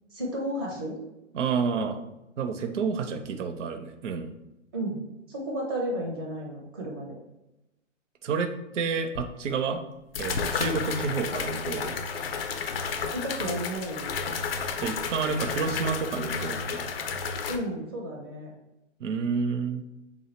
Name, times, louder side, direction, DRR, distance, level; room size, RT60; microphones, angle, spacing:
voice 1, 0.1-1.0 4.7-7.2 13.1-14.1 17.5-18.5, equal, 20° right, -1 dB, 0.4 m, -33 dB
voice 2, 1.3-2.0 2.4-4.3 8.2-9.8 10.2-12.0 14.8-16.9 19.0-19.8, right 5 dB, 70° right, 7 dB, 0.5 m, -29 dB
sound 1, 9.1-9.2 10.1-17.6, left 5 dB, 50° left, 0.4 m, -32 dB
3.6 x 2.0 x 4.1 m, 0.94 s
hypercardioid pair, 150°, 37 cm